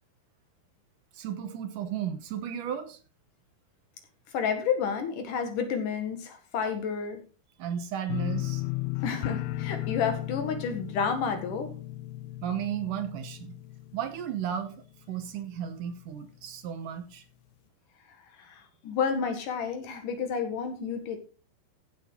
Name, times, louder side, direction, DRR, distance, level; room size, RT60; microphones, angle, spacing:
voice 1, 1.1-3.0 7.6-8.6 12.4-13.6 13.9-14.7 15.1-17.2, right 9 dB, 70° right, 2.5 m, -34 dB
voice 2, 4.3-7.2 9.0-11.7 18.4-21.2, left 6 dB, 65° left, 3.1 m, -30 dB
sound 1, 8.1-15.0 15.3-15.8 16.2-16.3, left 16 dB, 85° left, 2.5 m, -35 dB
15.5 x 7.7 x 3.8 m
omnidirectional pair, 4.1 m